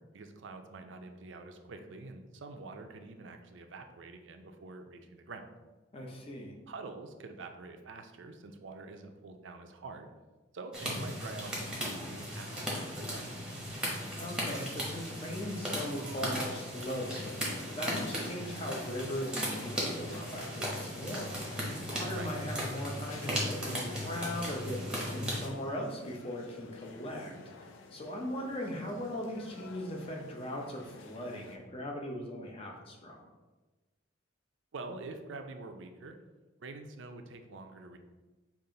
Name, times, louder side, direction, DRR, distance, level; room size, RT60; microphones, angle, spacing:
voice 1, 0.0-5.5 6.7-10.1 10.5-13.3 22.1-22.3 34.7-36.2 36.6-38.0, right 3 dB, 70° right, 6 dB, 0.5 m, -46 dB
voice 2, 5.9-6.6 14.2-17.4 17.8-21.4 21.8-33.3, equal, 30° left, 1 dB, 0.6 m, -39 dB
sound 1, 10.7-25.5, equal, 5° right, 0.9 m, -37 dB
Crowd Noise, 17.0-31.6, left 3 dB, 80° left, 0.5 m, -51 dB
5.3 x 2.5 x 3.8 m, 1.2 s
head